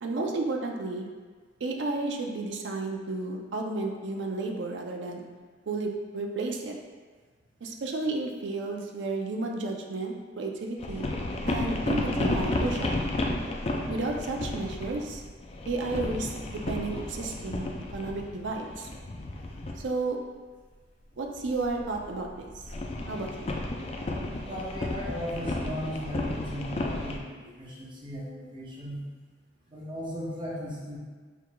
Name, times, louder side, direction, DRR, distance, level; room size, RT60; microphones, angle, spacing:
voice 1, 0.0-1.1 1.6-5.2 5.7-6.8 7.6-11.1 11.5-13.0 13.9-15.2 15.7-18.9 19.8-20.2 21.2-22.5 23.1-23.5, right 3 dB, 80° right, 2 dB, 0.5 m, -32 dB
sound 1, 10.8-19.8 21.4-27.2, left 2 dB, 35° left, 0.4 m, -32 dB
voice 2, 24.4-29.0 29.7-31.0, equal, 30° right, -6 dB, 0.9 m, -37 dB
4.6 x 3.7 x 2.3 m, 1.5 s
head